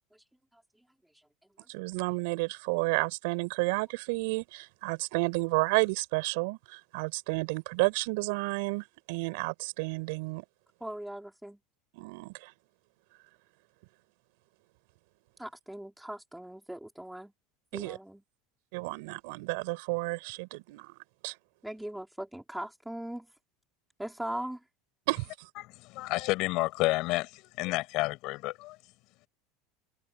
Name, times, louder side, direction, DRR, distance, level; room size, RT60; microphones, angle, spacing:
voice 1, 1.7-10.4 11.9-12.5 17.7-18.0 18.7-21.0 21.2-21.3 25.1-25.5, right 28 dB, 70° right, 6.9 m, -31 dB
voice 2, 10.8-11.6 15.4-17.3 17.7-18.2 21.6-23.3 24.0-24.6, right 1 dB, 5° right, 4.6 m, -39 dB
voice 3, 25.6-28.8, left 21 dB, 55° left, 7.4 m, -30 dB
supercardioid pair, 140°, 0 cm